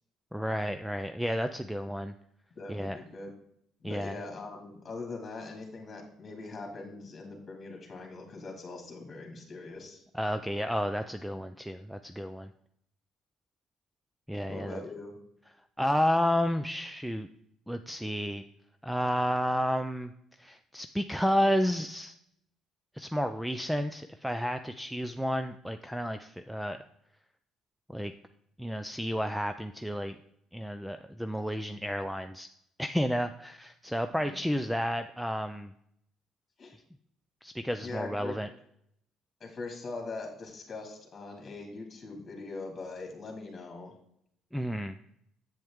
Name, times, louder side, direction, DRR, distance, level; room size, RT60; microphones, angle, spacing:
voice 1, 0.3-2.1 2.7-3.0 3.8-4.1 10.1-12.5 14.3-14.8 15.8-17.3 17.7-18.4 18.8-20.1 20.4-22.1 23.0-26.8 27.9-28.1 28.6-30.2 30.5-32.5 32.8-35.7 37.4-38.5 44.5-45.0, equal, ahead, 9 dB, 0.4 m, -31 dB
voice 2, 2.6-3.3 3.8-10.0 14.5-15.2 34.1-34.4 36.6-36.8 37.8-38.3 39.4-43.9, left 3 dB, 35° left, 2 dB, 2.3 m, -42 dB
7.9 x 7.5 x 3.6 m, 0.72 s
cardioid pair, 100°, 0 cm